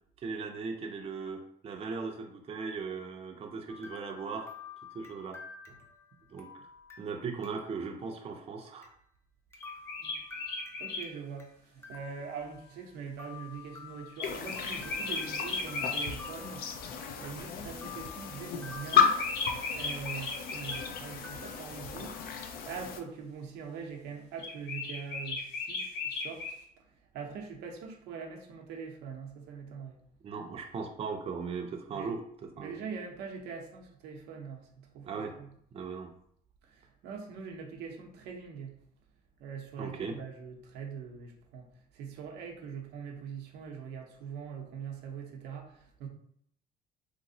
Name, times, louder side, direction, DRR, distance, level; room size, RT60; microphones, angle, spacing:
voice 1, 0.2-4.5 4.9-5.4 5.7-5.8 6.3-6.5 7.0-8.9 30.2-32.8 35.1-35.4 35.7-36.1 39.8-40.2, right 5 dB, 35° right, 2 dB, 0.5 m, -38 dB
sound 1, 3.7-7.9 8.2-8.3 8.8-8.9 9.5-11.5 11.8-12.9 13.2-17.4 17.8-20.4 20.7-21.4, left 5 dB, 15° left, 0.6 m, -50 dB
sound 2, 9.6-11.1 14.2-16.1 18.9-20.8 24.4-26.6, left 3 dB, 80° left, 1.0 m, -36 dB
voice 2, 10.8-16.9 17.2-19.2 19.7-26.5 27.1-30.0 31.9-32.1 32.6-35.5 36.6-38.8 39.4-41.7 41.9-46.1, right 6 dB, 85° right, 2 dB, 0.7 m, -43 dB
sound 3, 14.2-23.0, left 7 dB, 65° left, 0.5 m, -33 dB
3.2 x 2.9 x 2.7 m, 0.67 s
cardioid pair, 110°, 17 cm